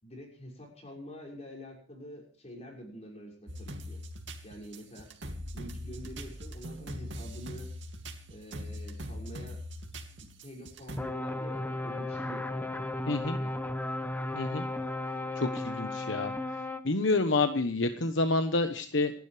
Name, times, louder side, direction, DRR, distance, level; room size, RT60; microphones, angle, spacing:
voice 1, 0.0-4.0 4.4-5.1 5.5-7.7 8.3-9.6 10.2-12.7 13.3-13.5, equal, 35° left, -1 dB, 6.3 m, -47 dB
sound 1, 3.5-11.0, equal, 70° right, 2.5 m, -42 dB
sound 2, 11.0-16.8, left 2 dB, 10° left, 1.1 m, -35 dB
voice 2, 13.1-13.4 14.3-14.7 15.4-16.3 16.8-19.1, left 3 dB, 75° left, 7 dB, 1.2 m, -28 dB
29.0 x 11.5 x 3.4 m, 0.43 s
head